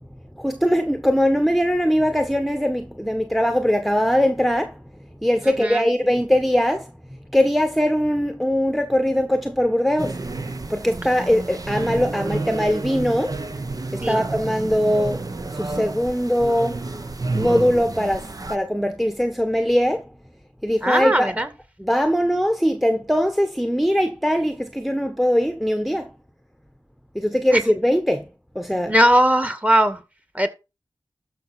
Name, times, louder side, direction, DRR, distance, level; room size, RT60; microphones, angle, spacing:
voice 1, 0.4-4.8 5.2-6.9 7.3-10.2 10.7-13.4 13.9-15.3 15.5-16.8 17.4-20.0 20.6-21.4 21.8-26.1 27.1-28.3 28.5-28.9, equal, ahead, 1.3 m, -21 dB
voice 2, 5.6-5.9 14.0-14.2 20.8-21.5 27.5-27.6 28.9-30.0 30.3-30.5, right 1 dB, 15° right, 2.3 m, -19 dB
sound 1, 10.0-18.6, right 3 dB, 50° right, 1.3 m, -30 dB
13.0 x 5.9 x 4.4 m
wide cardioid pair, 55°, 8 cm